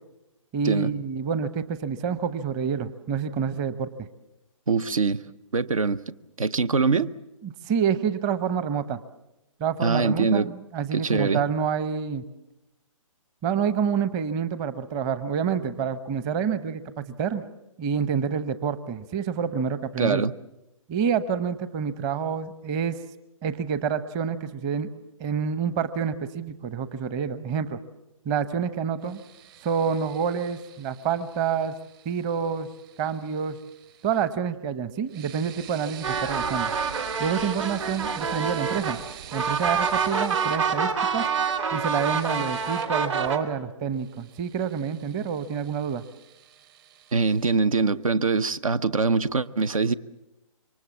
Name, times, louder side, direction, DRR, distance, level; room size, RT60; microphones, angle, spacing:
voice 1, 0.5-4.1 7.4-9.0 9.6-12.2 13.4-17.4 17.8-20.2 20.9-23.0 23.4-24.9 25.2-27.8 28.2-29.2 29.6-31.7 32.0-32.7 33.0-33.6 34.0-36.7 37.2-39.0 39.3-41.2 41.7-46.0, right 7 dB, 20° right, 0.9 m, -28 dB
voice 2, 4.7-5.2 5.5-6.0 6.4-7.1 9.8-10.5 10.9-11.4 20.0-20.3 47.1-49.9, right 4 dB, 75° right, 0.8 m, -23 dB
sound 1, 29.0-34.3 35.1-40.6 41.7-42.9 43.9-47.6, right 11 dB, 40° right, 3.4 m, -46 dB
sound 2, 36.0-43.4, right 6 dB, 60° right, 3.1 m, -27 dB
27.5 x 24.0 x 7.3 m
figure-of-eight pair, 140°, 17 cm